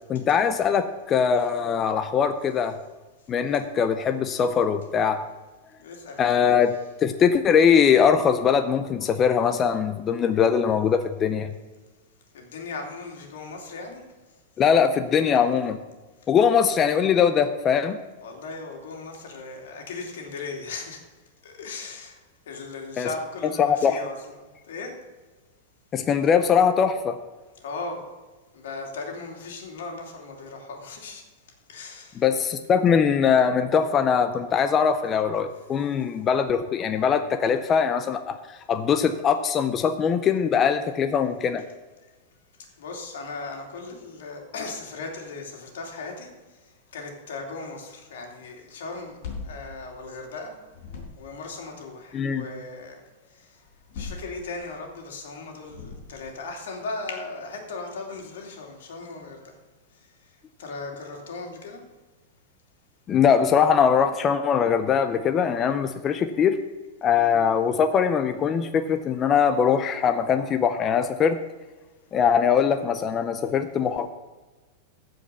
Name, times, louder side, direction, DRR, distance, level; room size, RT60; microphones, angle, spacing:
voice 1, 0.1-2.8 3.3-5.2 6.2-6.7 7.0-11.5 14.6-15.8 16.3-18.0 23.0-23.1 23.6-24.0 25.9-27.2 32.2-41.6 52.1-52.4 63.1-66.6 67.0-71.4 72.1-74.1, left 7 dB, 20° left, 9 dB, 0.5 m, -21 dB
voice 2, 5.8-6.4 12.3-14.0 18.2-21.0 21.4-22.2 22.5-24.2 24.7-24.9 27.6-28.0 28.5-31.2 31.7-32.2 42.8-46.3 46.9-49.2 49.4-50.6 51.2-53.0 53.4-53.5 53.9-59.4 60.6-61.8 67.1-67.3, left 3 dB, 85° left, 2 dB, 2.7 m, -37 dB
sound 1, 48.9-50.4 50.7-51.5 53.6-54.9 55.6-56.4, left 4 dB, 50° left, 4.2 m, -40 dB
14.5 x 5.2 x 6.8 m, 1.2 s
supercardioid pair, 170°, 0 cm